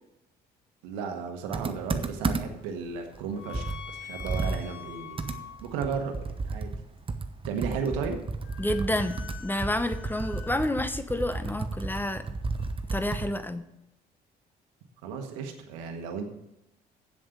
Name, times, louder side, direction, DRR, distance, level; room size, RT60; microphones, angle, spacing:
voice 1, 0.8-3.7 4.0-5.3 5.6-6.7 7.4-8.2 15.0-16.2, right 6 dB, 85° right, 4 dB, 1.3 m, -34 dB
sound 1, 1.4-13.6, left 9 dB, 70° left, 1.1 m, -48 dB
Computer keyboard, 1.5-2.7 3.1-3.2 3.5-13.4, right 3 dB, 25° right, 1.0 m, -33 dB
voice 2, 8.6-12.2 12.9-13.7, left 1 dB, 10° left, 11 dB, 1.0 m, -29 dB
7.6 x 7.6 x 6.7 m, 0.88 s
hypercardioid pair, 60°, 20 cm